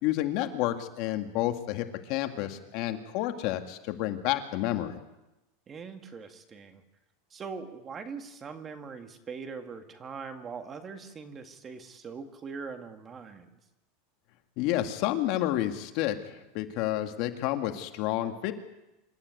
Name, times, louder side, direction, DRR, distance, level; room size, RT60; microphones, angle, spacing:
voice 1, 0.0-5.0 14.6-18.5, left 14 dB, 50° left, 6 dB, 2.0 m, -30 dB
voice 2, 5.7-6.8 7.3-13.6, right 5 dB, 20° right, 6 dB, 2.0 m, -42 dB
26.5 x 13.0 x 9.5 m, 0.95 s
supercardioid pair, 145°, 0 cm